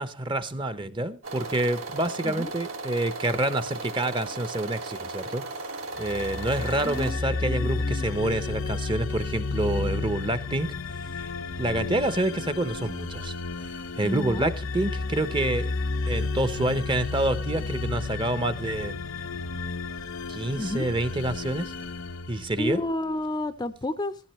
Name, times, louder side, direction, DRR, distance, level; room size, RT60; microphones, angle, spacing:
voice 1, 0.0-5.4 6.0-10.7 11.6-13.3 14.0-15.7 16.1-19.0 20.3-21.7 22.3-22.8, right 1 dB, 20° right, 0.7 m, -27 dB
sound 1, 1.2-7.1, right 3 dB, 65° right, 3.2 m, -36 dB
sound 2, 6.0-23.1, left 3 dB, 60° left, 0.8 m, -32 dB
voice 2, 6.8-7.2 7.5-8.1 14.0-14.5 20.5-20.9 22.6-24.2, left 1 dB, 20° left, 0.5 m, -31 dB
15.0 x 14.0 x 3.1 m
head